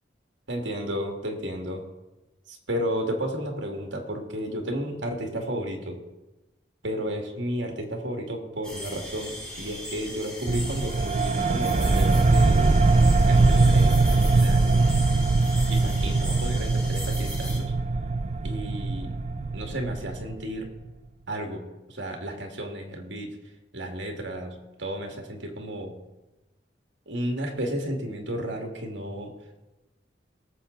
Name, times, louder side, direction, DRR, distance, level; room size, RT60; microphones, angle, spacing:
voice 1, 0.5-1.8 2.5-6.0 6.8-12.8 13.3-15.0 15.7-17.7 18.4-19.1 19.5-20.7 21.3-21.6 21.9-23.3 23.7-25.9 27.1-29.3, equal, 80° right, 2 dB, 2.1 m, -33 dB
sound 1, 8.6-17.6, equal, 5° left, 3.7 m, -38 dB
sound 2, 10.5-20.7, right 3 dB, 35° right, 0.5 m, -22 dB
18.5 x 7.3 x 3.9 m, 1.1 s
head